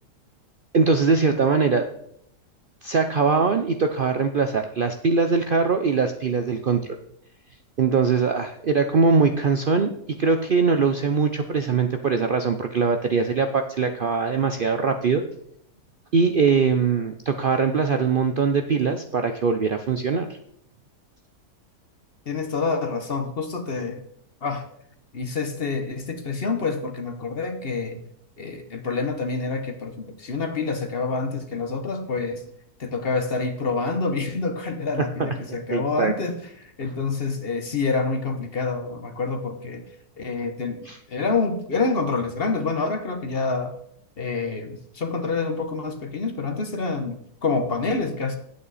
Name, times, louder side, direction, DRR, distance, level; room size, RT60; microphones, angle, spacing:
voice 1, 0.7-1.8 2.8-6.8 7.8-9.9 10.2-15.2 16.1-20.3 35.2-35.3 35.7-36.1 40.9-41.0, right 5 dB, 90° right, 6 dB, 0.4 m, -21 dB
voice 2, 22.3-24.0 24.4-24.6 25.1-28.0 28.4-32.4 32.8-39.8 40.2-40.8 41.1-43.7 44.2-48.4, left 4 dB, 40° left, 6 dB, 1.1 m, -27 dB
9.6 x 8.5 x 4.1 m, 0.71 s
omnidirectional pair, 1.8 m